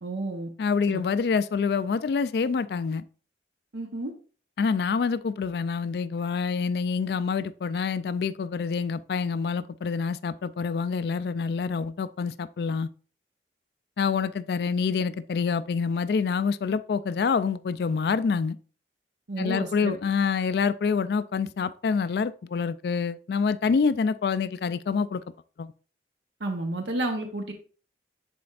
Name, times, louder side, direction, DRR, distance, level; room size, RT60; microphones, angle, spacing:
voice 1, 0.0-0.5 0.9-1.0 3.7-4.1 19.3-19.9 26.4-27.5, right 2 dB, 85° right, 0.9 m, -31 dB
voice 2, 0.6-3.0 4.6-12.9 14.0-18.6 19.4-25.2 25.6-25.7, left 5 dB, 60° left, 0.3 m, -26 dB
11.0 x 4.3 x 2.4 m
head